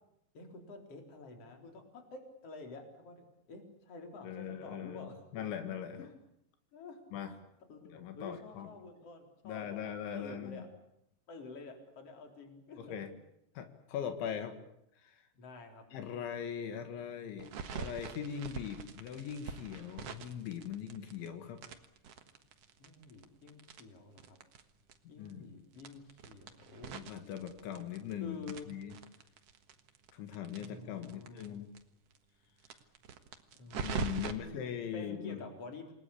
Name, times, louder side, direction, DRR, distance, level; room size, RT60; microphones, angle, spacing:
voice 1, 0.3-5.4 5.9-6.2 6.7-7.0 7.7-9.8 10.1-10.7 11.3-13.0 15.3-15.8 22.8-24.4 25.1-27.0 28.2-28.7 30.6-31.7 33.6-34.6 34.9-35.9, left 3 dB, 35° left, 4 dB, 4.5 m, -49 dB
voice 2, 4.2-6.1 7.1-7.3 7.9-8.7 9.4-10.7 12.8-13.1 13.6-14.5 15.0-15.2 15.9-21.6 25.2-25.5 26.9-28.4 28.7-28.9 30.1-31.7 33.8-35.4, left 8 dB, 85° left, 7 dB, 4.3 m, -40 dB
sound 1, 17.4-21.3 21.6-24.6 24.9-25.0 25.2-25.3 25.7-28.1 28.4-31.5 31.7-31.8 32.1-32.2 32.6-34.3, right 6 dB, 70° right, 1.4 m, -43 dB
28.0 x 19.5 x 8.6 m, 0.77 s
omnidirectional pair, 5.2 m